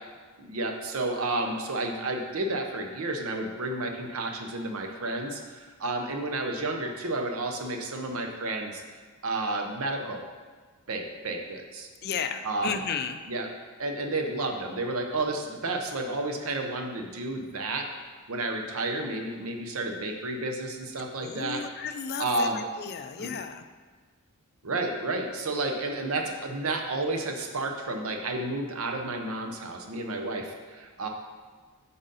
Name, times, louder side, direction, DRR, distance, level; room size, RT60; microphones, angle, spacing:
voice 1, 0.4-8.8 9.2-10.2 10.9-11.9 12.4-12.8 13.3-13.5 13.8-17.9 18.3-21.6 22.2-22.6 23.2-23.4 24.6-31.1, right 2 dB, 70° right, 3 dB, 0.8 m, -31 dB
voice 2, 12.0-13.2 21.2-23.7, left 7 dB, 45° left, 8 dB, 0.4 m, -34 dB
7.5 x 4.0 x 4.0 m, 1.5 s
head